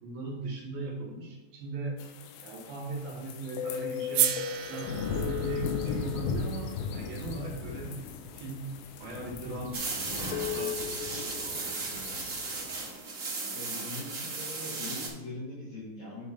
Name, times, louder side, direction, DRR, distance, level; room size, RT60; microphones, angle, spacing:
voice 1, 0.0-2.0 2.4-4.4 4.6-8.0 8.3-8.7 9.0-11.2 11.4-12.1, right 3 dB, 65° right, -2 dB, 2.7 m, -39 dB
sound 1, 2.0-12.9, left 6 dB, 85° left, 3.2 m, -36 dB
sound 2, 4.1-8.3, right 11 dB, 85° right, 2.3 m, -34 dB
sound 3, 9.7-15.1, right 3 dB, 50° right, 2.1 m, -36 dB
voice 2, 13.5-16.3, left 2 dB, 65° left, -6 dB, 1.9 m, -41 dB
11.0 x 4.7 x 4.2 m, 1.1 s
omnidirectional pair, 5.3 m